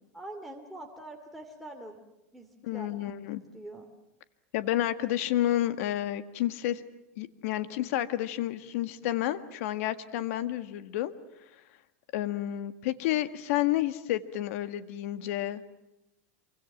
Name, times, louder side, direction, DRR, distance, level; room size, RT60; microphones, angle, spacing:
voice 1, 0.1-2.0 2.3-3.1 3.5-3.9, right 1 dB, ahead, 6 dB, 2.6 m, -44 dB
voice 2, 2.6-3.4 4.5-6.8 7.2-11.1 12.1-15.6, left 13 dB, 70° left, 12 dB, 1.8 m, -30 dB
26.5 x 25.0 x 7.3 m, 0.92 s
supercardioid pair, 140°, 8 cm